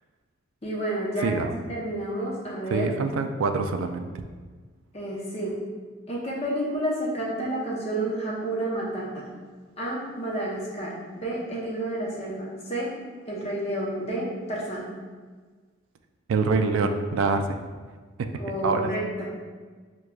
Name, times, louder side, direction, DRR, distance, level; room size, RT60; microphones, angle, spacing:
voice 1, 0.6-1.3 1.7-2.9 4.9-5.5 6.1-9.3 9.8-12.9 13.3-14.9 18.4-19.3, right 1 dB, 30° left, -5 dB, 0.7 m, -30 dB
voice 2, 2.7-4.1 16.3-17.6 18.2-18.3 18.6-18.9, right 4 dB, 85° right, 6 dB, 0.3 m, -25 dB
6.1 x 2.3 x 2.3 m, 1.5 s
head